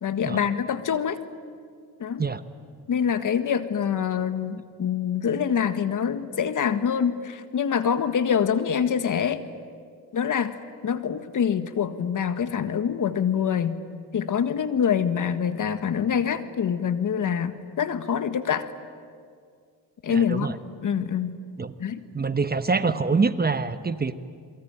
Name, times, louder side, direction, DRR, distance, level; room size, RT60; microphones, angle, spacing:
voice 1, 0.0-1.2 2.0-2.2 2.9-9.4 10.1-10.6 10.8-13.8 14.1-18.7 20.0-20.5 20.8-21.4 21.8-22.0, left 7 dB, 50° left, 10 dB, 1.7 m, -25 dB
voice 2, 20.1-20.6 21.6-21.7 22.1-24.2, right 4 dB, 25° right, 11 dB, 1.2 m, -25 dB
28.0 x 23.0 x 9.1 m, 2.2 s
supercardioid pair, 75°, 39 cm